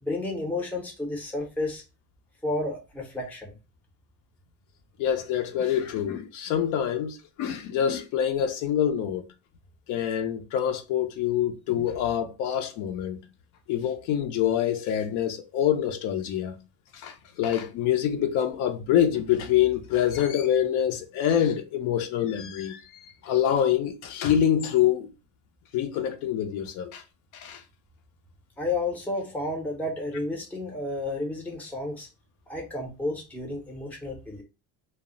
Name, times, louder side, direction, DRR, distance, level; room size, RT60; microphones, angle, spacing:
voice 1, 0.0-1.8 2.4-3.6 28.6-32.1 32.5-34.4, left 2 dB, 5° left, 0.5 m, -31 dB
voice 2, 5.0-9.2 9.9-13.2 13.7-16.6 16.9-22.8 23.2-25.1 25.7-27.0 27.3-27.6, left 10 dB, 65° left, 0.5 m, -26 dB
2.1 x 2.0 x 3.7 m
cardioid pair, 160°, 33 cm